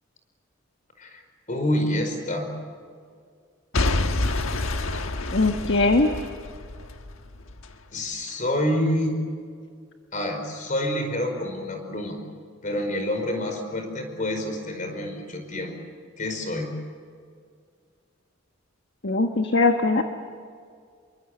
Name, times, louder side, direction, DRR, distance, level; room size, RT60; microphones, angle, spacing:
voice 1, 1.5-2.5 7.9-9.2 10.1-12.2 12.6-15.7 16.2-16.7, left 1 dB, 40° left, 5 dB, 5.1 m, -27 dB
Boom / Shatter / Crushing, 3.7-7.7 8.3-8.4, left 2 dB, 85° left, 1.4 m, -28 dB
voice 2, 5.3-6.1 19.0-20.0, left 3 dB, 60° left, 4 dB, 1.4 m, -20 dB
28.0 x 23.5 x 8.1 m, 2.1 s
head